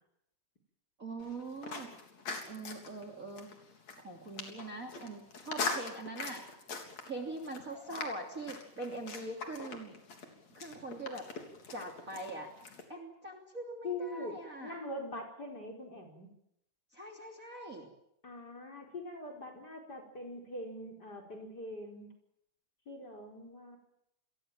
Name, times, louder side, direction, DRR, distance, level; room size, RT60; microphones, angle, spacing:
voice 1, 1.0-1.9 2.5-3.5 4.0-6.4 7.0-10.0 10.5-11.3 11.7-12.5 12.9-14.8 16.9-17.9, right 2 dB, 25° right, 2 dB, 3.2 m, -42 dB
sound 1, 1.2-12.8, left 4 dB, 55° left, 4.7 m, -43 dB
voice 2, 13.8-16.3 18.2-22.1 22.9-23.8, left 1 dB, 30° left, 4 dB, 5.3 m, -43 dB
29.0 x 22.0 x 7.7 m, 0.79 s
omnidirectional pair, 3.6 m